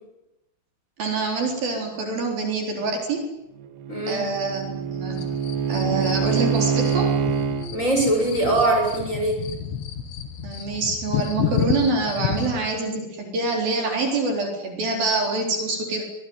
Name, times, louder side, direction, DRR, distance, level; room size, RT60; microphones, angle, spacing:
voice 1, 1.0-3.3 4.1-5.3 5.7-7.1 10.4-16.0, right 3 dB, 55° right, 2 dB, 5.6 m, -26 dB
Bowed string instrument, 3.6-7.7, right 7 dB, 70° right, 3.9 m, -25 dB
voice 2, 3.9-4.2 7.7-9.4, right 2 dB, 15° left, 1 dB, 7.3 m, -22 dB
sound 1, 5.2-12.7, left 8 dB, 75° left, 4.6 m, -31 dB
26.5 x 21.5 x 9.6 m, 0.91 s
omnidirectional pair, 5.1 m